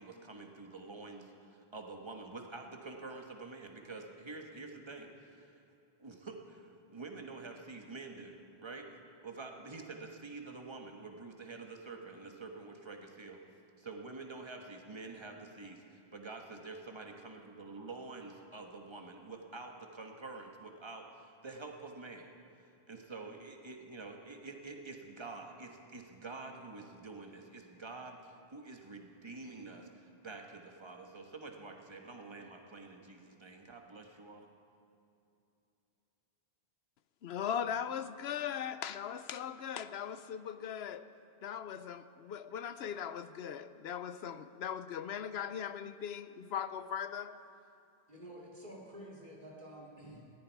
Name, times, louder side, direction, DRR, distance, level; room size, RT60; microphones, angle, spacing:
voice 1, 0.0-5.6 6.0-13.4 13.8-34.5, right 3 dB, 25° right, 3 dB, 1.4 m, -47 dB
voice 2, 37.2-41.0 41.4-47.4, left 8 dB, 80° left, 12 dB, 0.9 m, -39 dB
voice 3, 48.1-50.3, equal, 50° right, -3 dB, 3.0 m, -50 dB
19.5 x 15.5 x 4.7 m, 2.7 s
omnidirectional pair, 1.0 m